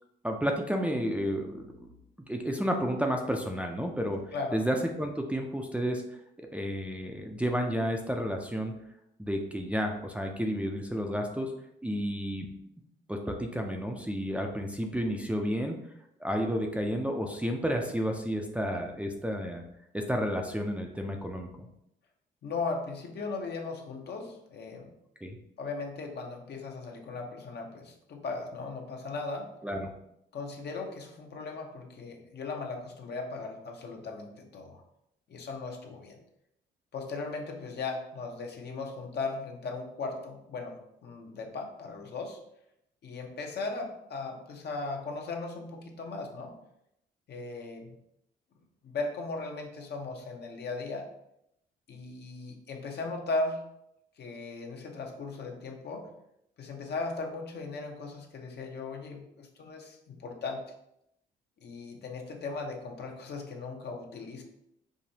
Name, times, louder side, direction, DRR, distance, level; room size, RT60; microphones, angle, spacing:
voice 1, 0.2-1.9 2.3-6.0 6.4-8.8 9.2-11.5 11.8-12.5 13.1-15.8 16.2-19.6 19.9-21.7 25.2-25.4 29.6-29.9, equal, 5° right, 2 dB, 0.4 m, -31 dB
voice 2, 4.3-4.6 22.4-24.9 25.6-29.5 30.3-34.8 35.3-36.2 36.9-42.4 43.0-46.5 47.3-48.0 48.8-51.1 51.9-53.7 54.2-56.1 56.6-60.7 61.6-64.4, left 3 dB, 55° left, 2 dB, 0.8 m, -37 dB
4.9 x 2.6 x 2.8 m, 0.79 s
cardioid pair, 90°, 20 cm